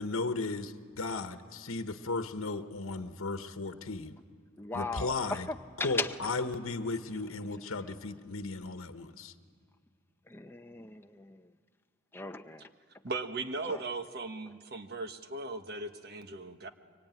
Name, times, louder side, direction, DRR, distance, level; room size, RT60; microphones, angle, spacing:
voice 1, 0.0-4.2 4.7-5.5 5.8-9.3, left 3 dB, 85° left, 8 dB, 1.1 m, -35 dB
voice 2, 4.6-6.2 10.3-11.5 12.1-12.7 13.7-13.8, left 3 dB, 10° left, 6 dB, 0.8 m, -37 dB
voice 3, 13.0-16.7, right 3 dB, 50° right, 7 dB, 1.3 m, -38 dB
24.5 x 23.5 x 9.2 m, 2.1 s
head